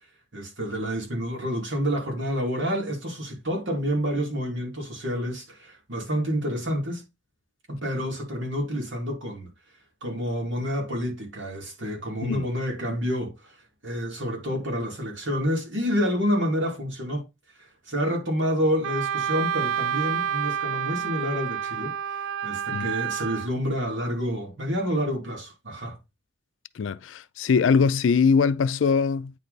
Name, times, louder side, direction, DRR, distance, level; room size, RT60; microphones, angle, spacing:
voice 1, 0.3-7.0 7.7-9.5 10.0-13.6 13.8-17.2 17.6-26.0, equal, 75° right, 2.6 m, -28 dB
Wind instrument woodwind instrument, 18.8-23.5, right 9 dB, 90° right, 0.4 m, -29 dB
voice 2, 26.8-29.3, left 5 dB, 80° left, 0.4 m, -22 dB
9.0 x 3.3 x 4.0 m
head